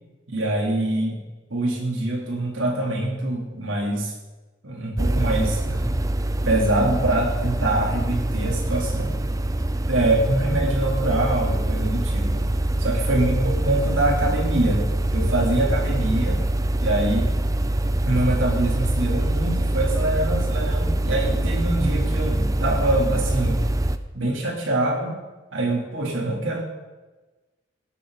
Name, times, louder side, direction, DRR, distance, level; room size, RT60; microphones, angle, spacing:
voice 1, 0.3-1.2 1.5-4.1 4.6-5.9 6.4-9.2 9.9-12.5 12.8-16.4 16.8-17.3 18.0-23.6 24.1-25.1 25.5-26.6, right 1 dB, 80° right, 0 dB, 3.6 m, -24 dB
sound 1, 5.0-24.0, right 1 dB, 15° right, 0.5 m, -24 dB
17.0 x 13.5 x 4.2 m, 1.2 s
head